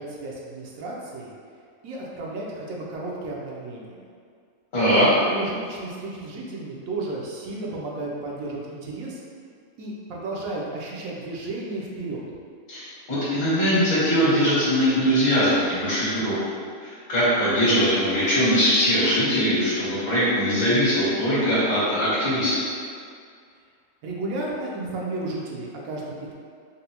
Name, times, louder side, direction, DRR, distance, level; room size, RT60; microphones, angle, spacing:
voice 1, 0.0-1.3 1.8-4.0 4.9-9.2 9.8-12.2 24.0-26.3, right 2 dB, 90° right, -3 dB, 1.0 m, -33 dB
voice 2, 4.7-5.0 12.7-16.3 16.8-22.5, equal, 65° left, -11 dB, 1.6 m, -21 dB
4.1 x 2.0 x 2.8 m, 2.2 s
omnidirectional pair, 1.4 m